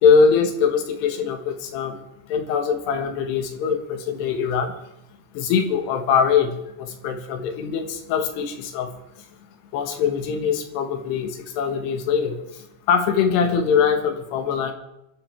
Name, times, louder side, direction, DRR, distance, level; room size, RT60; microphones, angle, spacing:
voice 1, 0.0-2.0 2.3-4.7 5.4-8.9 9.7-11.3 11.6-12.4 12.9-14.7, left 6 dB, 75° left, 5 dB, 3.6 m, -22 dB
26.0 x 12.5 x 3.5 m, 0.86 s
omnidirectional pair, 5.0 m